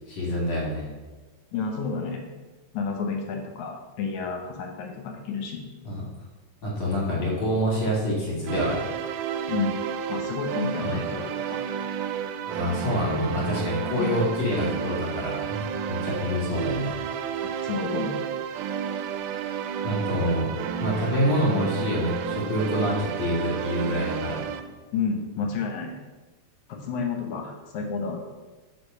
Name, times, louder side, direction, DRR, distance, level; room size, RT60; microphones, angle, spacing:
voice 1, 0.1-0.8 5.8-6.0 6.6-8.9 10.8-11.0 12.5-17.0 19.8-20.5 20.8-24.4, equal, 45° left, -5 dB, 2.6 m, -27 dB
voice 2, 1.5-2.2 2.7-5.6 9.5-9.8 10.1-11.6 14.0-14.2 17.6-18.2 24.9-26.0 26.7-28.2, left 5 dB, 70° left, 2 dB, 2.2 m, -30 dB
sound 1, 8.5-24.6, right 7 dB, 85° right, 2.1 m, -31 dB
6.9 x 4.9 x 5.3 m, 1.3 s
omnidirectional pair, 3.6 m